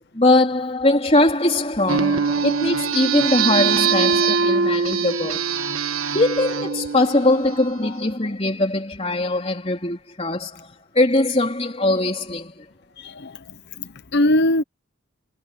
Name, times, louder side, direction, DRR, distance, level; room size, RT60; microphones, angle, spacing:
voice 1, 0.1-5.4 6.1-12.7, left 2 dB, 30° left, 3.8 m, -21 dB
sound 1, 1.9-7.9, right 5 dB, 75° right, 1.5 m, -22 dB
voice 2, 13.0-13.4 13.8-14.6, left 1 dB, 50° left, 0.8 m, -21 dB
head